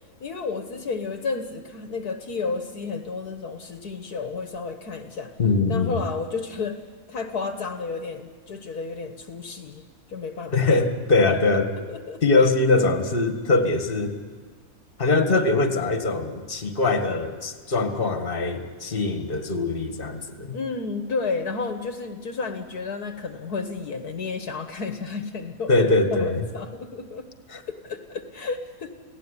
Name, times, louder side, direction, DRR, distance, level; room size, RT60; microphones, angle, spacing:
voice 1, 0.2-5.3 5.7-6.8 7.1-10.8 11.9-12.4 15.3-15.4 20.5-27.3 27.7-29.0, left 4 dB, 65° left, 7 dB, 1.8 m, -32 dB
voice 2, 5.4-6.0 10.5-11.7 12.2-14.1 15.0-20.6 25.7-26.4 27.5-27.6, left 3 dB, 35° left, 7 dB, 1.9 m, -22 dB
29.5 x 17.5 x 9.9 m, 1.5 s
omnidirectional pair, 1.8 m